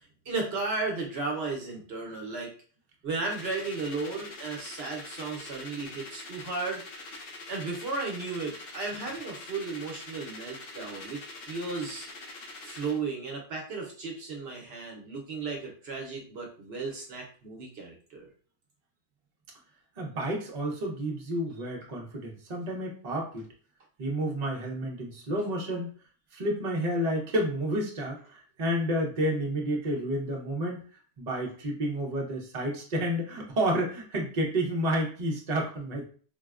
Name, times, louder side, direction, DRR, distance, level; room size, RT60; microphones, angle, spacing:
voice 1, 0.0-2.5 3.0-6.8 7.5-11.2 11.5-12.1 12.6-18.3, right 3 dB, 70° right, -1 dB, 1.0 m, -34 dB
sound 1, 3.2-13.0, left 2 dB, 60° left, 0.8 m, -44 dB
voice 2, 20.0-23.4 24.0-25.9 26.3-30.8 31.2-36.0, right 1 dB, 40° right, -1 dB, 0.8 m, -30 dB
4.0 x 2.0 x 2.4 m, 0.42 s
omnidirectional pair, 1.1 m